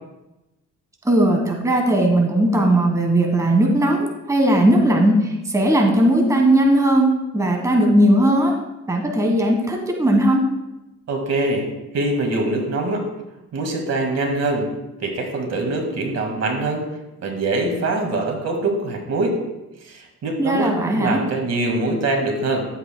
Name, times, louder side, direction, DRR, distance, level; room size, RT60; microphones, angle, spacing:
voice 1, 1.0-8.5 8.9-10.4 20.4-21.2, right 1 dB, 10° right, 2 dB, 1.4 m, -18 dB
voice 2, 11.1-11.7 11.9-13.0 13.5-14.7 15.0-16.8 17.2-19.4 19.9-22.7, right 2 dB, 55° right, 3 dB, 2.0 m, -23 dB
12.5 x 7.9 x 2.2 m, 0.98 s
cardioid pair, 90°, 30 cm